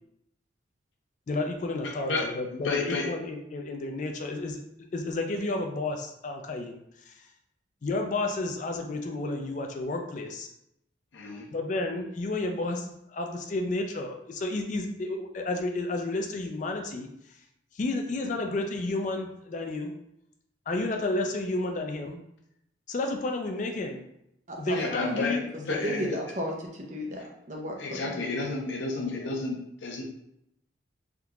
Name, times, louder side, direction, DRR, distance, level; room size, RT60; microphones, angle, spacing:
voice 1, 1.3-4.6 4.9-6.8 7.1-7.2 7.8-10.5 11.5-17.1 17.7-19.9 20.7-22.2 22.9-24.0 24.6-25.4, left 2 dB, 40° left, 3 dB, 0.3 m, -31 dB
voice 2, 1.8-3.1 11.1-11.5 24.7-26.2 27.8-30.0, left 3 dB, 80° left, 0 dB, 0.7 m, -32 dB
voice 3, 24.5-25.2 25.7-28.2, equal, 40° right, 0 dB, 0.6 m, -34 dB
3.6 x 2.8 x 2.3 m, 0.78 s
head